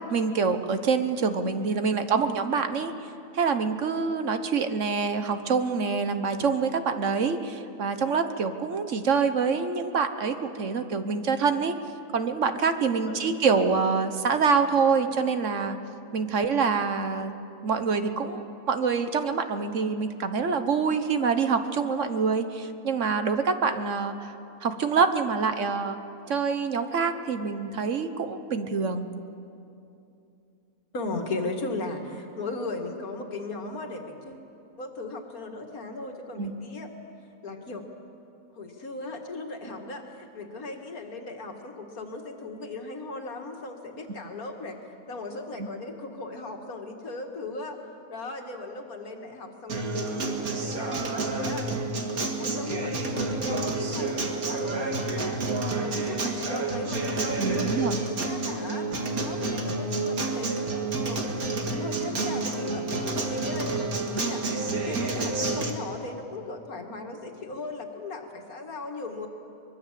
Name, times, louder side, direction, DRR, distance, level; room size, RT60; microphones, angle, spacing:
voice 1, 0.1-2.9 3.3-11.7 12.1-15.8 16.1-17.3 17.6-24.3 24.6-26.0 26.3-29.1 36.4-36.5 45.6-45.7 57.4-58.0, right 5 dB, 60° right, 8 dB, 1.4 m, -26 dB
voice 2, 13.0-13.3 30.9-34.5 34.8-36.9 37.4-37.9 38.5-47.8 48.1-51.7 52.0-55.4 55.7-58.9 59.2-61.3 61.6-64.4 64.7-69.3, left 3 dB, 80° left, 3 dB, 2.5 m, -37 dB
Acoustic guitar, 49.7-65.7, right 3 dB, 85° right, 2.4 m, -29 dB
24.0 x 22.0 x 7.6 m, 2.7 s
omnidirectional pair, 1.5 m